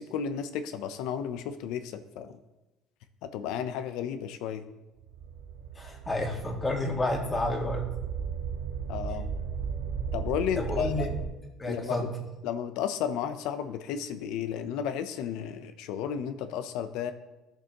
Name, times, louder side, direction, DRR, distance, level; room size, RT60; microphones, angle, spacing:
voice 1, 0.0-2.4 3.2-4.6 8.9-9.3 10.1-11.1 11.7-12.1 12.4-17.1, left 8 dB, 75° left, 10 dB, 0.7 m, -33 dB
sound 1, 5.0-11.3, right 6 dB, 85° right, 0.8 m, -35 dB
voice 2, 5.8-8.0 10.6-11.2 11.6-12.2, left 1 dB, 20° left, 0 dB, 1.8 m, -30 dB
13.5 x 6.9 x 3.0 m, 1.0 s
cardioid pair, 110°, 0 cm